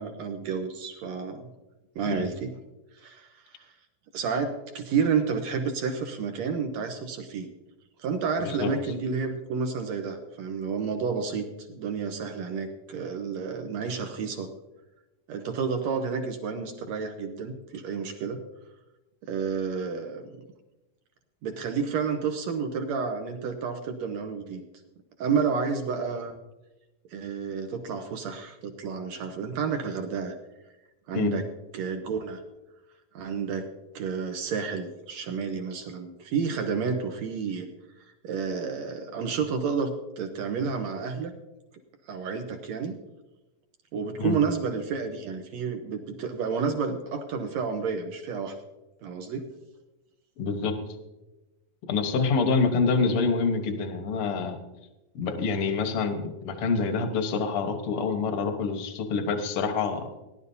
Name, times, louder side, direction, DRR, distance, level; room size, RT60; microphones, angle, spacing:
voice 1, 0.0-1.5 1.9-2.5 2.9-3.7 4.1-7.5 8.0-14.5 15.3-18.4 19.3-20.3 21.4-24.6 25.2-26.3 27.1-30.3 31.1-31.4 31.7-32.4 33.1-33.7 33.9-37.7 38.2-41.3 42.1-42.9 43.9-48.6 49.0-49.5, right 5 dB, 75° right, 6 dB, 1.6 m, -30 dB
voice 2, 50.4-50.7 51.9-54.6 55.1-60.1, left 4 dB, 65° left, 7 dB, 1.5 m, -26 dB
18.5 x 11.5 x 2.7 m, 1.0 s
omnidirectional pair, 4.2 m